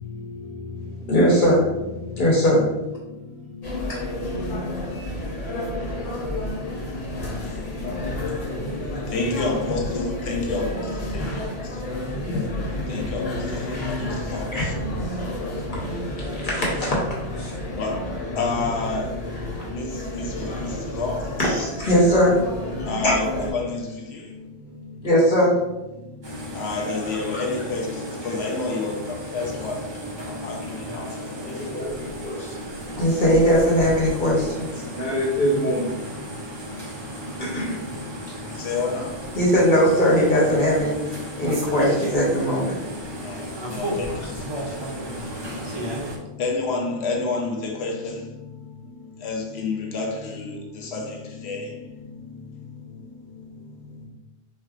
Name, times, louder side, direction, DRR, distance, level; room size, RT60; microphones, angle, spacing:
voice 1, 1.1-1.7 2.1-2.7 14.5-14.7 16.4-17.0 17.4-17.5 21.4-22.4 23.0-23.2 25.0-25.5 31.5-32.5 33.0-35.9 37.4-37.8 39.4-41.0 41.4-42.8, equal, 45° left, 1.0 m, -20 dB
sound 1, 3.6-23.5, left 1 dB, 90° left, 1.3 m, -31 dB
voice 2, 5.0-5.7 6.5-6.6 6.9-7.4 8.2-8.3 8.6-9.4 10.7-11.4 12.5-12.6 13.6-13.8 14.0-14.1 20.9-21.1 22.0-22.1 22.9-23.1 27.1-27.5 29.3-29.4, left 3 dB, 60° right, 1.5 m, -40 dB
voice 3, 8.5-11.8 12.2-12.5 12.9-14.7 17.7-19.2 19.7-21.3 22.9-24.4 26.5-31.7 38.5-39.2 43.2-48.3 49.0-52.1 52.9-53.0, left 3 dB, 70° left, 0.8 m, -30 dB
sound 2, 26.2-46.2, equal, 40° right, 0.3 m, -34 dB
4.5 x 2.1 x 2.4 m
omnidirectional pair, 1.2 m